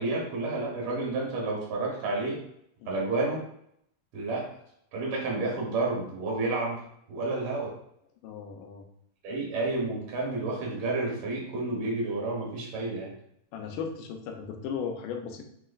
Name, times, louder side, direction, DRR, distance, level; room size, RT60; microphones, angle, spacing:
voice 1, 0.0-2.4 2.9-3.4 4.1-4.5 4.9-6.8 7.1-7.7 9.2-13.1, right 2 dB, 75° right, -2 dB, 1.2 m, -30 dB
voice 2, 8.2-8.9 13.5-15.4, left 6 dB, 80° left, 3 dB, 2.1 m, -36 dB
6.3 x 2.9 x 2.5 m, 0.74 s
omnidirectional pair, 4.0 m